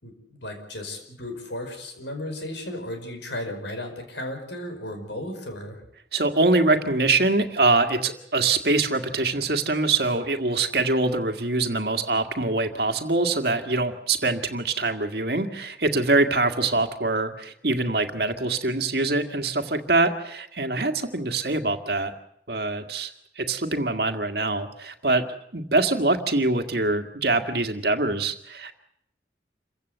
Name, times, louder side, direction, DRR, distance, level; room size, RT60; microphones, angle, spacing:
voice 1, 0.0-5.8, left 1 dB, 80° left, 5 dB, 5.4 m, -35 dB
voice 2, 6.1-22.1 22.5-23.1 23.4-28.7, right 3 dB, 60° right, 7 dB, 1.9 m, -24 dB
28.0 x 15.5 x 8.1 m, 0.72 s
head